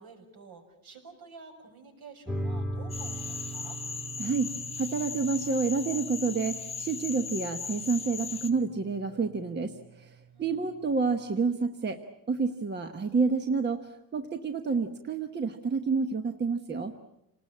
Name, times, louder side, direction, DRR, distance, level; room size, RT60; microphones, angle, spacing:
voice 1, 0.0-3.8 10.3-10.7, right 4 dB, 60° right, 3 dB, 6.5 m, -50 dB
sound 1, 2.3-11.2, right 1 dB, ahead, 1.8 m, -41 dB
Cricket / Frog, 2.9-8.5, left 5 dB, 15° left, 0.9 m, -38 dB
voice 2, 4.2-12.0 12.3-16.9, right 4 dB, 25° right, 6 dB, 1.1 m, -29 dB
28.5 x 19.5 x 8.6 m, 0.86 s
cardioid pair, 160°, 42 cm